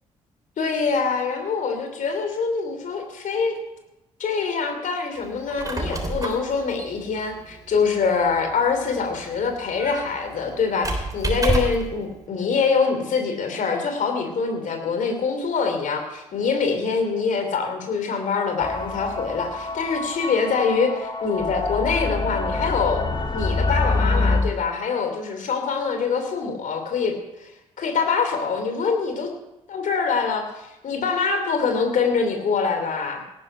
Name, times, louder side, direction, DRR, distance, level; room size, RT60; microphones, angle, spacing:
voice 1, 0.6-3.6 4.2-23.1 23.3-27.5 27.8-29.3 29.7-33.2, left 5 dB, 50° left, 6 dB, 3.1 m, -24 dB
Squeak, 5.3-12.0, right 2 dB, 20° right, 3.3 m, -30 dB
sound 1, 18.6-24.4, left 3 dB, 30° left, 2.4 m, -26 dB
17.5 x 10.0 x 5.7 m, 0.92 s
figure-of-eight pair, 45°, 17 cm